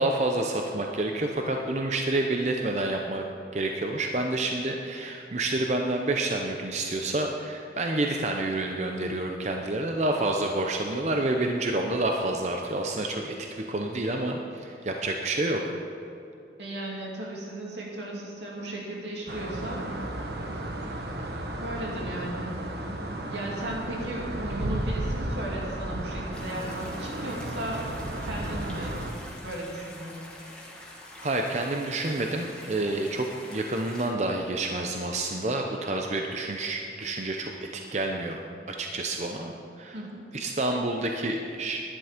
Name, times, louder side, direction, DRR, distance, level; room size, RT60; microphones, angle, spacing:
voice 1, 0.0-3.2 3.5-15.7 31.2-40.0 40.3-41.8, right 2 dB, 40° right, 2 dB, 0.7 m, -29 dB
voice 2, 16.6-19.9 21.6-22.8 23.3-27.9 28.2-29.0 29.4-30.2 39.9-40.2, right 1 dB, 85° right, -3 dB, 2.8 m, -36 dB
sound 1, 19.3-29.1, right 1 dB, 70° right, 1.1 m, -34 dB
sound 2, 26.3-34.1, left 1 dB, 5° left, 1.8 m, -46 dB
11.5 x 10.5 x 5.1 m, 2.7 s
head